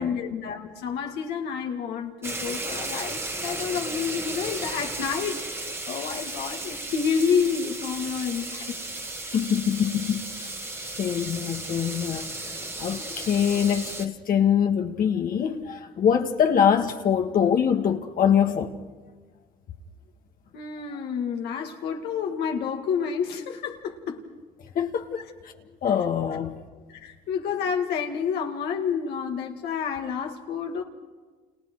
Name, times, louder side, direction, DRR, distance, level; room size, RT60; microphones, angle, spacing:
voice 1, 0.0-8.8 20.5-24.3 26.9-30.8, left 6 dB, 75° left, 2.4 m, -29 dB
sound 1, 2.2-14.1, right 2 dB, 15° right, 1.8 m, -34 dB
voice 2, 9.3-10.5 11.0-18.7 20.9-21.0 24.7-25.1 25.4-25.5 25.8-26.6, left 8 dB, 55° left, 1.7 m, -24 dB
29.5 x 28.5 x 4.8 m
cardioid pair, 110°, 17 cm